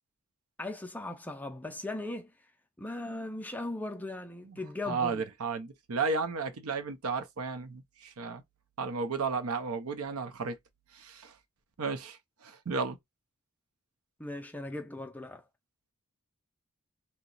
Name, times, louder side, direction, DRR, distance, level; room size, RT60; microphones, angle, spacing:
voice 1, 0.6-2.3 2.8-5.2 14.2-15.4, left 2 dB, 5° left, 0.3 m, -38 dB
voice 2, 4.9-8.4 8.8-10.6 10.9-11.3 11.8-12.2 12.4-13.0, right 4 dB, 85° right, 0.6 m, -33 dB
2.8 x 2.1 x 3.8 m
head